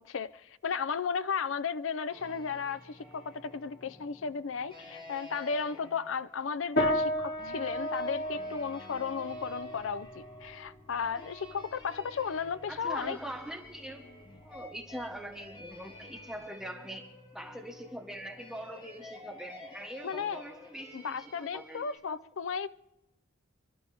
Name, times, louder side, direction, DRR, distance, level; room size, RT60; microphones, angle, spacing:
voice 1, 0.0-13.2 20.0-20.4 20.9-22.7, left 6 dB, 75° left, 0.5 m, -34 dB
sound 1, 2.1-22.0, left 1 dB, 25° left, 6.3 m, -51 dB
sound 2, 6.8-16.4, equal, 55° left, 2.3 m, -36 dB
voice 2, 12.7-14.1 14.4-17.0 17.3-21.0 21.4-22.2, equal, 5° right, 1.4 m, -42 dB
28.5 x 11.5 x 3.5 m
head